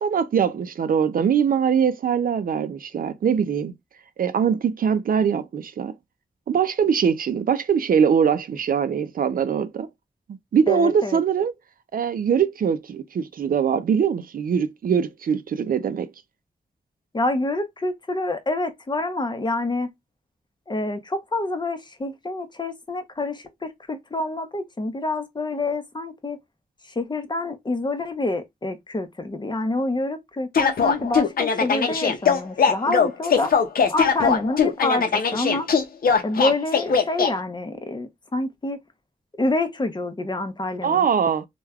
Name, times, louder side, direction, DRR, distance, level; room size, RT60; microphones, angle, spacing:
voice 1, 0.0-3.7 4.2-5.9 6.5-9.9 10.3-11.5 11.9-16.1 40.8-41.5, right 7 dB, 65° right, 0.4 m, -22 dB
voice 2, 10.7-11.2 17.1-19.9 20.7-26.4 26.9-33.5 33.9-35.7 36.2-38.8 39.4-41.1, left 2 dB, 30° left, 0.7 m, -27 dB
sound 1, 30.6-37.3, left 6 dB, 75° left, 0.6 m, -20 dB
3.2 x 2.2 x 2.3 m
cardioid pair, 55°, 15 cm